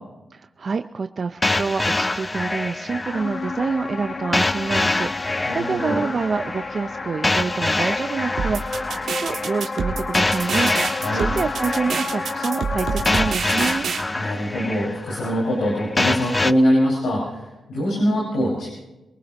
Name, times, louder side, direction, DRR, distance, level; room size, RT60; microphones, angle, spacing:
voice 1, 0.3-13.9, right 5 dB, 55° right, 8 dB, 0.5 m, -27 dB
sound 1, 1.4-16.5, left 2 dB, 25° left, 0.4 m, -26 dB
sound 2, 3.1-13.3, left 3 dB, 50° left, 0.7 m, -31 dB
voice 2, 5.4-6.0 11.0-11.2 14.1-18.7, equal, 85° left, -5 dB, 5.2 m, -23 dB
sound 3, 8.4-14.0, right 5 dB, 75° right, 1.6 m, -27 dB
23.5 x 19.0 x 3.0 m, 1.0 s
cardioid pair, 60°, 0 cm